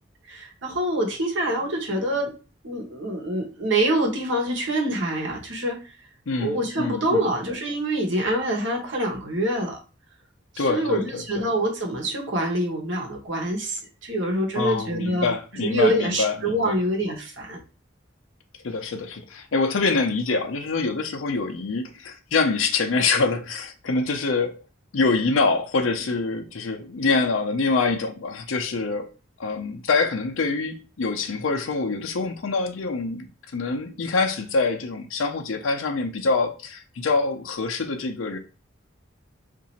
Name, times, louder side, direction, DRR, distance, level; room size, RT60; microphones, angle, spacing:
voice 1, 0.3-2.3 2.6-6.0 6.4-9.8 10.5-17.6, right 1 dB, 75° right, 1.2 m, -25 dB
voice 2, 6.3-7.3 10.6-11.4 14.5-16.7 18.6-24.6 24.9-29.1 29.4-38.4, left 4 dB, 90° left, 0.6 m, -25 dB
2.8 x 2.6 x 4.1 m
head